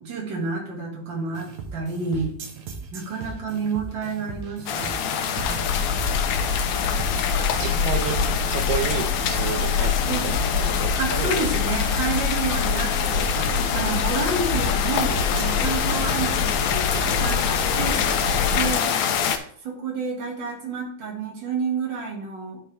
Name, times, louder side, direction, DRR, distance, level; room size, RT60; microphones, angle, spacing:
voice 1, 0.0-2.3 2.9-5.0 5.3-5.7 7.6-7.8 10.1-10.4 11.0-18.9 19.6-22.6, right 4 dB, 40° right, 0 dB, 1.9 m, -30 dB
sound 1, 1.3-18.6, right 5 dB, 65° right, 2.0 m, -38 dB
sound 2, 4.7-19.4, left 8 dB, 85° left, 1.6 m, -26 dB
sound 3, 5.4-18.7, left 5 dB, 70° left, 2.1 m, -27 dB
voice 2, 7.4-9.9 10.2-11.7, right 9 dB, 85° right, 8 dB, 2.7 m, -31 dB
12.0 x 4.4 x 3.4 m, 0.63 s
omnidirectional pair, 4.4 m